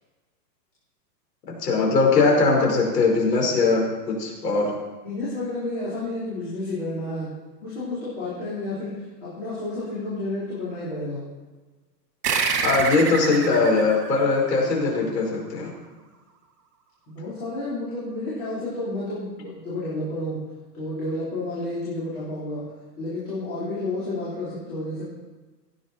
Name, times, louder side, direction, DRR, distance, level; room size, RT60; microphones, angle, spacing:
voice 1, 1.6-4.7 12.6-15.7, left 3 dB, 70° left, 0 dB, 5.3 m, -21 dB
voice 2, 5.0-7.3 7.6-11.2 17.1-20.4 20.7-22.7 23.0-25.0, left 2 dB, 30° left, -9 dB, 4.5 m, -31 dB
sound 1, 12.2-15.2, right 6 dB, 65° right, 2.3 m, -28 dB
16.5 x 9.8 x 4.6 m, 1.3 s
supercardioid pair, 180°, 49 cm